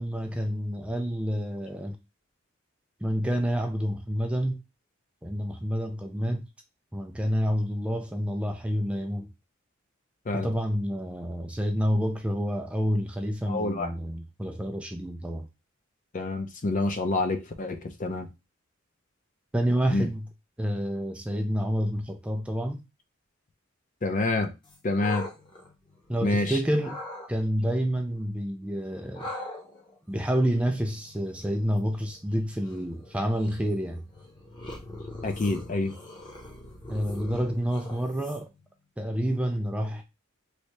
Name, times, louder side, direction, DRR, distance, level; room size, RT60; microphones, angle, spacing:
voice 1, 0.0-2.0 3.0-4.6 5.2-6.5 6.9-9.3 10.3-15.5 19.5-20.3 20.6-22.8 26.1-27.0 27.3-29.3 30.1-34.0 36.9-38.5 39.0-40.0, equal, 5° right, 0.3 m, -28 dB
voice 2, 13.5-13.9 16.1-18.3 19.9-20.1 24.0-24.5 24.8-25.3 26.2-26.6 35.2-36.0, left 2 dB, 40° left, 0.5 m, -27 dB
sound 1, 24.6-26.4 26.8-27.3 29.1-38.6, left 1 dB, 25° left, 0.9 m, -42 dB
3.2 x 2.7 x 3.1 m
head